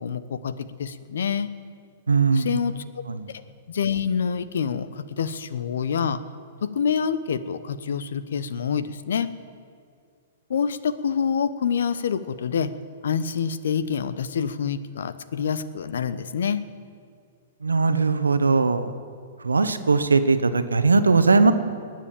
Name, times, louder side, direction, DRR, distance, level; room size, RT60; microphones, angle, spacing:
voice 1, 0.0-1.5 2.3-2.7 3.3-6.2 6.6-9.3 10.5-12.7 13.0-16.6, left 7 dB, 70° left, 14 dB, 0.8 m, -27 dB
voice 2, 2.1-2.5 3.1-3.3 17.6-18.9 19.4-21.5, right 4 dB, 90° right, 11 dB, 0.9 m, -19 dB
20.5 x 7.5 x 8.7 m, 2.2 s
hypercardioid pair, 115°, 0 cm